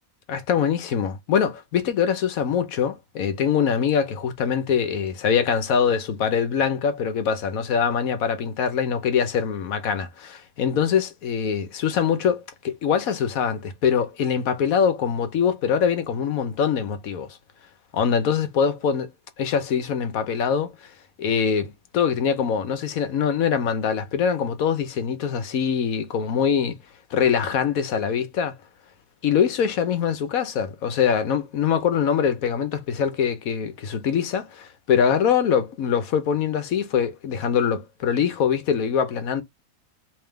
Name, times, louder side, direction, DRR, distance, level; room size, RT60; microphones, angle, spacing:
voice 1, 0.3-17.3 17.9-19.1 19.4-20.7 21.2-26.8 27.1-28.6 29.2-39.4, left 7 dB, 70° left, 1.2 m, -23 dB
3.5 x 3.2 x 3.3 m
omnidirectional pair, 1.6 m